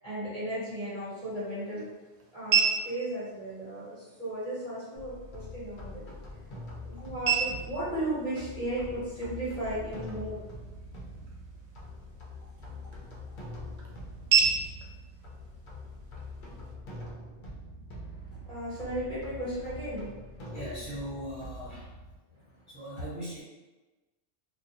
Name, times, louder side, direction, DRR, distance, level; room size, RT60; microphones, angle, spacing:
voice 1, 0.0-1.9 2.3-6.0 6.8-10.4 18.3-20.1, right 1 dB, 35° right, -12 dB, 1.1 m, -35 dB
sound 1, 0.7-16.7, right 6 dB, 70° right, 0.8 m, -34 dB
sound 2, 5.0-22.2, left 1 dB, 55° left, 0.6 m, -44 dB
voice 2, 20.4-21.9 22.7-23.4, equal, 25° left, -12 dB, 1.2 m, -39 dB
2.3 x 2.2 x 2.7 m, 1.2 s
omnidirectional pair, 1.2 m